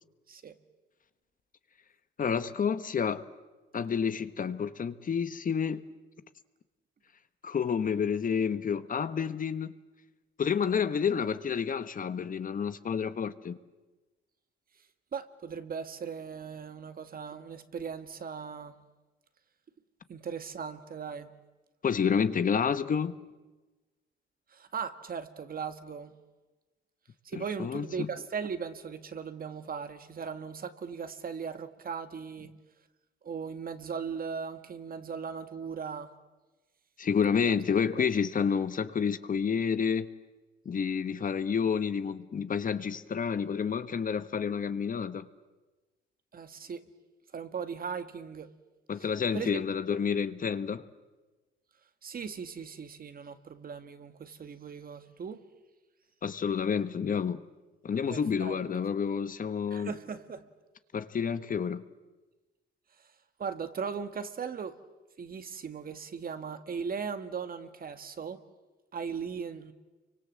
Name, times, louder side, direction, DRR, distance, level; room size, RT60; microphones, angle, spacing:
voice 1, 2.2-3.3 3.7-5.8 7.4-9.7 10.4-13.6 21.8-23.2 27.6-28.1 37.0-40.1 40.6-45.3 48.9-50.8 56.2-57.4 57.8-59.9 60.9-61.8, left 6 dB, 45° left, 1.3 m, -29 dB
voice 2, 15.1-18.8 20.1-21.3 24.5-26.1 27.3-32.5 33.2-36.1 37.4-37.6 38.0-38.2 46.3-46.8 47.3-48.5 49.3-49.6 49.9-50.0 52.0-55.4 58.1-58.6 59.7-60.5 63.4-64.8 65.2-68.4 68.9-69.7, right 6 dB, 45° right, 1.9 m, -38 dB
30.0 x 25.0 x 7.6 m
cardioid pair, 90°, 20 cm